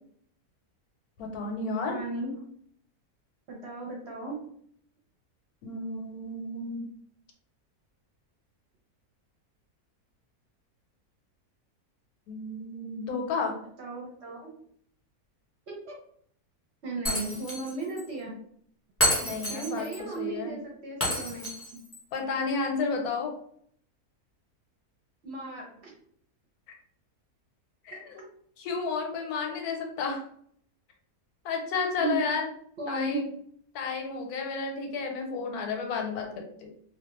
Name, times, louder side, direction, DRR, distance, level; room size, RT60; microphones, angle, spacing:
voice 1, 1.2-2.0 5.6-6.9 12.3-13.5 19.2-20.6 22.1-23.3 26.7-26.8 27.8-28.2 28.6-30.2 31.4-32.5 32.9-33.3 33.7-36.7, left 4 dB, 85° left, 2 dB, 1.1 m, -32 dB
voice 2, 1.9-2.3 3.5-4.4 13.8-14.5 16.8-18.3 19.5-21.8 25.2-25.9 32.0-32.2 32.8-33.2, right 3 dB, 55° right, -2 dB, 0.8 m, -35 dB
Shatter, 17.1-17.7 18.0-18.1 19.0-20.0 21.0-22.0, equal, 15° left, 0.5 m, -29 dB
2.4 x 2.3 x 2.9 m, 0.64 s
omnidirectional pair, 1.6 m